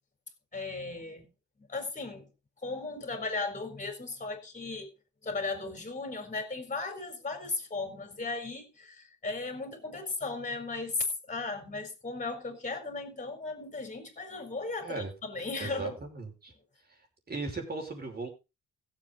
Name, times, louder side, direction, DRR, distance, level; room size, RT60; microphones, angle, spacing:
voice 1, 0.5-1.3 1.6-2.3 2.6-4.9 5.2-16.0, left 3 dB, 25° left, 4.4 m, -36 dB
voice 2, 14.8-15.1 15.6-16.5 16.9-18.3, right 3 dB, 30° right, 5.2 m, -37 dB
16.5 x 7.8 x 3.9 m
cardioid pair, 90°, 30 cm